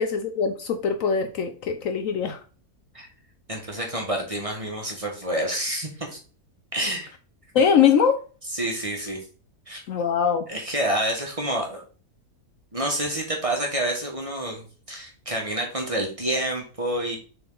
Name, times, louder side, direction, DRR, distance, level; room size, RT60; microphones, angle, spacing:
voice 1, 0.0-2.4 7.5-8.2 9.9-10.5, left 7 dB, 65° left, 8 dB, 1.0 m, -22 dB
voice 2, 3.5-6.2 6.7-7.1 8.5-9.2 9.7-9.8 10.5-11.8 12.7-17.2, right 1 dB, 20° right, 0 dB, 1.5 m, -28 dB
7.4 x 3.8 x 3.8 m, 0.38 s
omnidirectional pair, 1.6 m